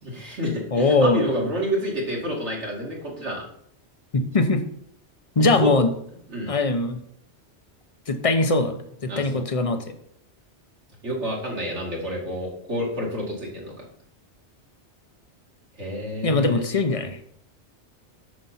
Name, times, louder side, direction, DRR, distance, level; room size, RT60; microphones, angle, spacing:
voice 1, 0.0-3.5 5.4-5.7 6.3-6.5 9.1-9.4 11.0-13.7 15.8-16.6, equal, 75° right, -2 dB, 2.6 m, -29 dB
voice 2, 0.7-1.3 4.1-4.6 5.4-5.9 6.5-7.0 8.1-10.0 16.2-17.2, left 3 dB, 35° left, 8 dB, 0.8 m, -21 dB
7.6 x 6.7 x 4.3 m, 0.68 s
omnidirectional pair, 1.2 m